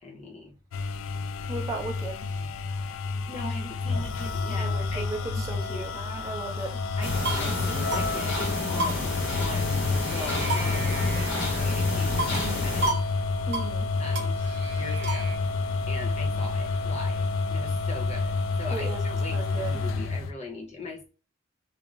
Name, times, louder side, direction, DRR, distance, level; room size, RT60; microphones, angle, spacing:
voice 1, 0.0-0.5 2.4-2.5 3.3-5.1 5.3-6.2 7.0-13.0 14.0-14.4 14.8-15.4 15.9-18.3 18.6-21.1, left 2 dB, 35° left, 0.7 m, -40 dB
sound 1, 0.7-20.3, left 3 dB, 80° left, 0.3 m, -29 dB
voice 2, 1.5-2.3 4.5-5.9 6.2-6.8 12.3-12.9 13.5-13.9 18.7-19.8, right 2 dB, 20° right, 0.7 m, -36 dB
sound 2, 6.9-7.5 7.9-8.1 8.3-8.4 8.8-9.8 10.0-11.7 12.2-12.5 12.8-13.1 13.3-13.7 14.1-15.4, right 2 dB, 60° right, 0.7 m, -33 dB
sound 3, 7.0-12.9, left 2 dB, 65° left, 0.8 m, -31 dB
2.5 x 2.0 x 3.2 m
head